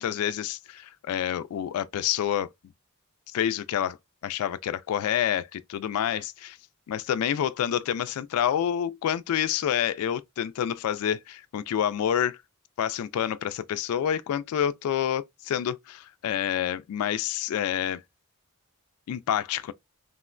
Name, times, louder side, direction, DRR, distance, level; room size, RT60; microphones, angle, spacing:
voice 1, 0.0-2.5 3.3-4.0 4.2-6.6 6.9-12.4 12.8-18.0 19.1-19.7, left 9 dB, 85° left, 0.3 m, -28 dB
3.6 x 2.1 x 2.3 m
head